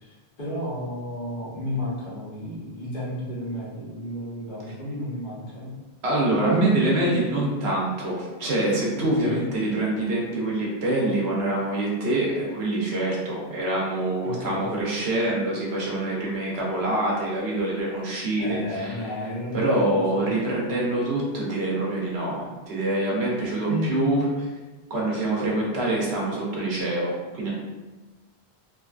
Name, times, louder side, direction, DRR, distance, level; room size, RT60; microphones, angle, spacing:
voice 1, 0.0-5.7 8.9-9.4 14.2-14.7 18.4-20.4 23.7-24.0, left 1 dB, 55° left, -8 dB, 1.2 m, -32 dB
voice 2, 6.0-19.1 19.5-24.3 24.9-27.5, right 2 dB, 85° right, -3 dB, 1.0 m, -25 dB
3.2 x 2.3 x 2.4 m, 1.2 s
omnidirectional pair, 1.1 m